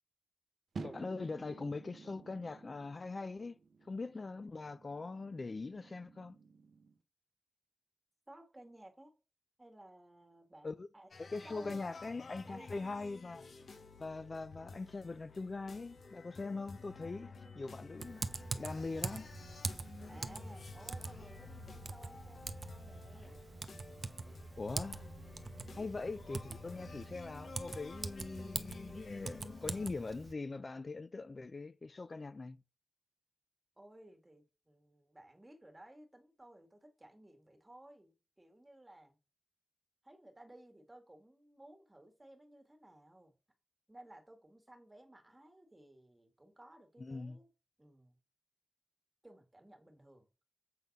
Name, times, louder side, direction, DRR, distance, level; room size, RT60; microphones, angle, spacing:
sound 1, 0.7-7.0, right 4 dB, 75° right, 1.0 m, -52 dB
voice 1, 0.8-3.6 3.8-6.4 10.6-10.9 11.2-13.4 14.0-19.3 24.6-25.1 25.7-32.6 47.0-47.4, left 3 dB, 40° left, 0.5 m, -42 dB
voice 2, 8.3-9.1 9.6-11.1 11.4-11.8 12.5-13.1 20.1-23.4 24.5-24.8 25.5-25.9 33.8-39.2 40.0-43.3 43.9-47.5 47.8-48.2 49.2-50.3, right 1 dB, 15° right, 1.8 m, -57 dB
sound 2, 11.1-29.9, left 4 dB, 70° left, 1.1 m, -52 dB
Typing, 18.0-30.3, right 3 dB, 50° right, 0.7 m, -44 dB
7.5 x 3.9 x 5.3 m
wide cardioid pair, 110°, 0 cm